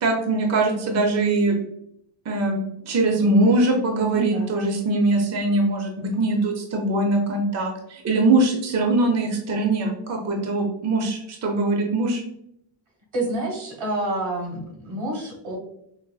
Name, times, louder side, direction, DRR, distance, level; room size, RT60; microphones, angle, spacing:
voice 1, 0.0-1.6 2.3-2.6 2.8-12.2, right 2 dB, 35° right, 1 dB, 0.5 m, -22 dB
voice 2, 4.1-4.5 13.1-15.6, right 1 dB, 85° right, 1 dB, 1.2 m, -28 dB
3.8 x 2.9 x 2.3 m, 0.76 s
wide cardioid pair, 175°, 47 cm